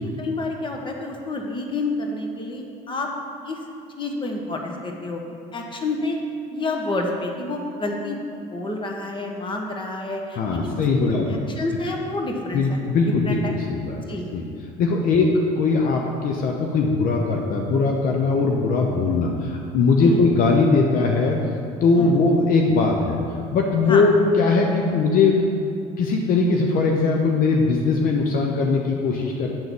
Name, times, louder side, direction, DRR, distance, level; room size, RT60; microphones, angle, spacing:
voice 1, 0.0-3.1 3.4-3.6 4.0-5.2 5.5-6.2 6.5-10.8 11.3-12.8 13.2-13.5 14.1-14.3 15.0-15.1 20.0-20.3 22.0-22.2 23.9-24.0, left 2 dB, 30° left, 2 dB, 1.2 m, -29 dB
voice 2, 10.3-11.4 12.5-13.4 13.7-14.0 14.3-14.5 14.8-21.4 21.8-23.2 23.5-25.4 26.0-29.5, left 4 dB, 55° left, 1 dB, 0.8 m, -20 dB
8.9 x 3.9 x 7.0 m, 2.5 s
supercardioid pair, 85°, 17 cm